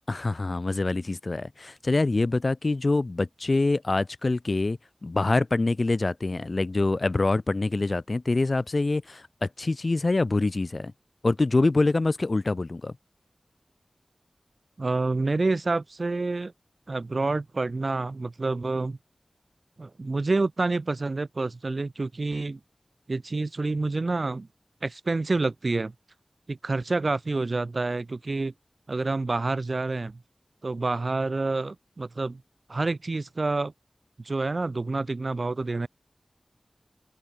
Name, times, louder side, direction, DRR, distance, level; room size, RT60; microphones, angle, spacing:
voice 1, 0.1-10.9 11.2-12.9, left 2 dB, 55° left, 0.3 m, -25 dB
voice 2, 14.8-16.5 16.9-19.0 19.8-22.6 23.1-24.5 24.8-25.9 26.5-28.5 28.9-30.2 30.6-32.4 32.7-33.7 34.2-35.9, right 3 dB, 60° right, 0.5 m, -28 dB
wide cardioid pair, 55°, 0 cm